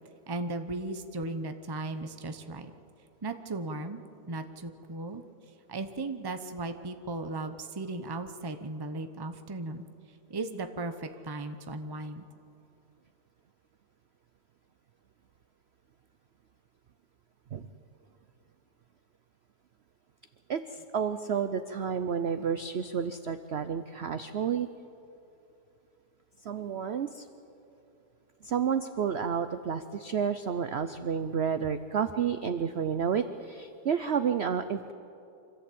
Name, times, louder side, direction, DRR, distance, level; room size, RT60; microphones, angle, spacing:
voice 1, 0.3-2.7 3.2-4.0 4.3-5.2 5.7-9.9 10.3-12.3, right 2 dB, 20° right, 8 dB, 0.6 m, -36 dB
voice 2, 20.9-24.7 26.4-27.3 28.4-34.9, right 7 dB, 65° right, 10 dB, 0.6 m, -30 dB
26.0 x 14.5 x 8.6 m, 2.7 s
omnidirectional pair, 1.9 m